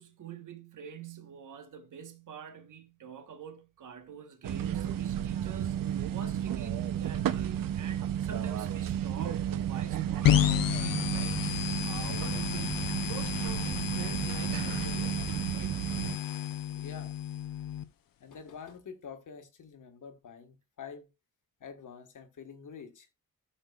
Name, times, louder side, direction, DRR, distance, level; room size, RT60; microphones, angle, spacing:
voice 1, 0.0-15.2 15.5-15.8, right 7 dB, 65° right, 1.2 m, -46 dB
sound 1, 4.4-16.2, right 10 dB, 90° right, 0.7 m, -32 dB
sound 2, 10.2-17.8, left 11 dB, 85° left, 0.7 m, -31 dB
voice 2, 16.7-17.2 18.2-21.1 21.6-23.1, left 6 dB, 65° left, 1.4 m, -47 dB
13.5 x 6.4 x 2.3 m
wide cardioid pair, 105°, 33 cm